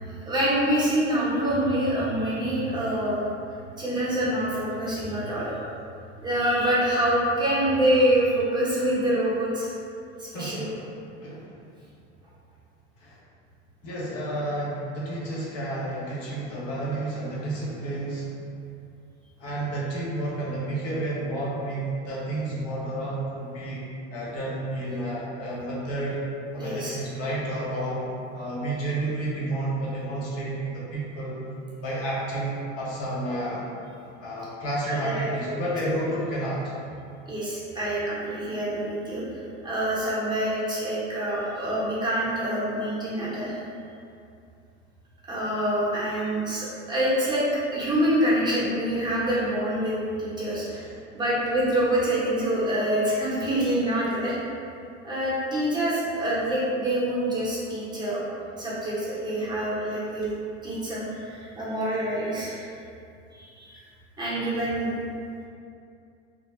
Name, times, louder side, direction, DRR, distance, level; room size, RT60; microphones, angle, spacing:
voice 1, 0.0-3.3 3.8-5.5 6.2-9.7 10.2-10.7 26.6-26.9 34.9-35.6 37.3-43.6 45.3-47.4 47.7-50.8 51.1-54.4 55.0-58.2 58.6-60.3 60.6-62.7 63.3-63.8 64.2-64.9, right 1 dB, 10° right, -9 dB, 0.8 m, -26 dB
voice 2, 10.3-10.9 11.2-11.5 13.0-13.2 13.8-18.3 19.4-23.8 24.1-26.2 26.5-28.1 28.3-31.4 31.8-33.6 34.2-36.7 50.7-51.0, right 1 dB, 45° left, -6 dB, 0.7 m, -31 dB
2.2 x 2.0 x 3.0 m, 2.5 s
hypercardioid pair, 105°, 36 cm